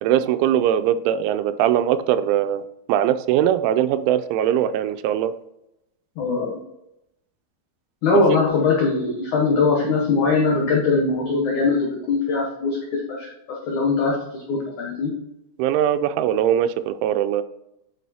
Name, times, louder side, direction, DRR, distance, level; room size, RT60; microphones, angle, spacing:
voice 1, 0.0-2.6 2.9-5.3 15.6-17.4, right 10 dB, 90° right, 11 dB, 3.0 m, -21 dB
voice 2, 6.2-6.6 8.0-13.3 13.7-15.1, left 4 dB, 85° left, -2 dB, 1.7 m, -21 dB
9.2 x 6.2 x 2.8 m, 0.85 s
omnidirectional pair, 5.4 m